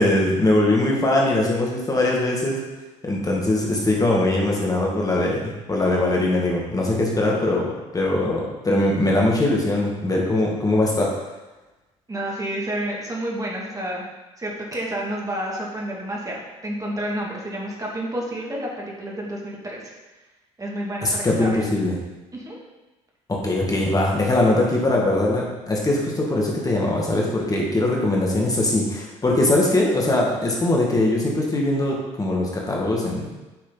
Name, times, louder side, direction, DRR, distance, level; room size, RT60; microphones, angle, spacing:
voice 1, 0.0-2.6 3.0-11.1 21.0-22.0 23.3-33.3, left 1 dB, 20° left, -2 dB, 2.1 m, -21 dB
voice 2, 12.1-14.0 14.4-19.9 20.6-21.7 22.3-22.6, right 1 dB, 20° right, -3 dB, 2.6 m, -30 dB
9.1 x 6.4 x 4.1 m, 1.1 s
figure-of-eight pair, 55°, 16 cm